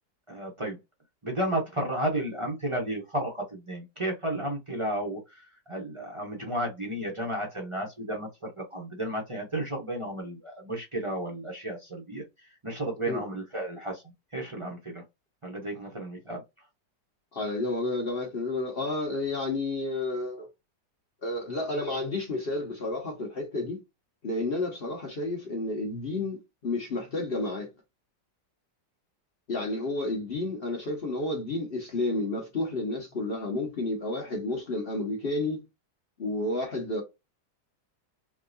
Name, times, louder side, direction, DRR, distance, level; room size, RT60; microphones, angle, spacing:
voice 1, 0.3-0.8 1.2-12.2 12.6-14.0 14.3-15.0 15.4-16.4, right 1 dB, 30° right, 0.6 m, -33 dB
voice 2, 17.3-20.5 21.2-23.8 24.2-27.7 29.5-35.6 36.2-37.0, left 2 dB, 40° left, 0.9 m, -31 dB
4.5 x 2.3 x 2.5 m
omnidirectional pair, 1.9 m